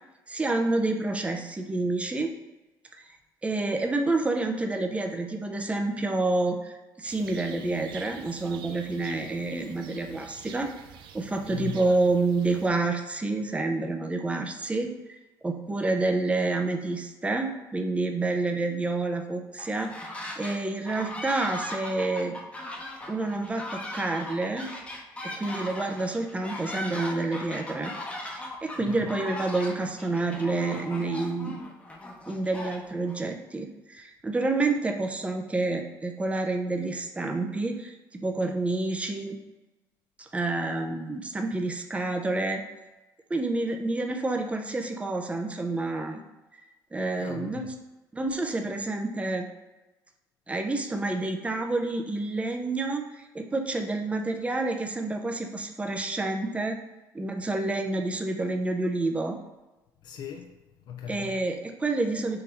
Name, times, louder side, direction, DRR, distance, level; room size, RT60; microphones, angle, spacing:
voice 1, 0.3-2.3 3.4-10.7 11.1-14.9 15.4-19.9 20.4-22.4 23.1-24.7 25.2-27.9 28.2-31.7 32.3-39.4 40.2-42.6 43.3-46.2 46.5-46.6 46.9-47.7 48.1-49.5 50.5-56.8 57.1-59.4 61.1-62.4, right 2 dB, 15° right, 0.5 m, -28 dB
sound 1, 7.1-12.7, right 8 dB, 75° right, 0.4 m, -47 dB
voice 2, 11.5-11.8 28.8-29.1 47.2-47.7 60.0-61.4, left 9 dB, 60° left, 0.5 m, -40 dB
sound 2, 19.6-20.6 20.9-33.2, left 1 dB, 15° left, 0.8 m, -38 dB
3.8 x 2.7 x 4.3 m
cardioid pair, 95°, 8 cm